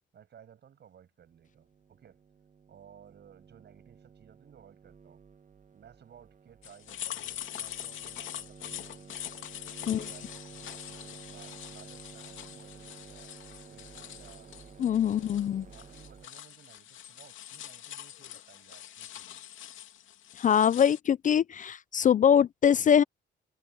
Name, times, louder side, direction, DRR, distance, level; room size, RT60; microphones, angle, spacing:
voice 1, 0.1-2.2 2.7-5.2 5.7-9.5 9.8-13.3 13.7-15.4 15.7-19.4, right 9 dB, 60° right, 6.4 m, -57 dB
sound 1, 1.2-16.3, right 6 dB, 40° right, 1.8 m, -52 dB
sound 2, 6.6-21.0, left 12 dB, 80° left, 2.7 m, -44 dB
voice 2, 14.8-15.6 20.4-23.0, left 8 dB, 40° left, 0.4 m, -23 dB
cardioid pair, 90°, 20 cm